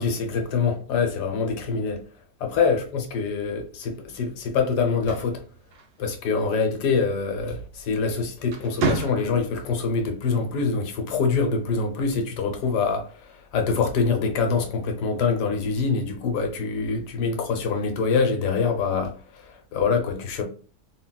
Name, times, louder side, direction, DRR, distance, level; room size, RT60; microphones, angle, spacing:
voice 1, 0.0-2.0 2.4-5.4 6.0-20.4, left 5 dB, 85° left, 1.3 m, -25 dB
sound 1, 4.9-6.3 7.8-8.1 8.5-9.6, right 4 dB, 80° right, 1.3 m, -31 dB
3.7 x 2.2 x 2.2 m
omnidirectional pair, 1.7 m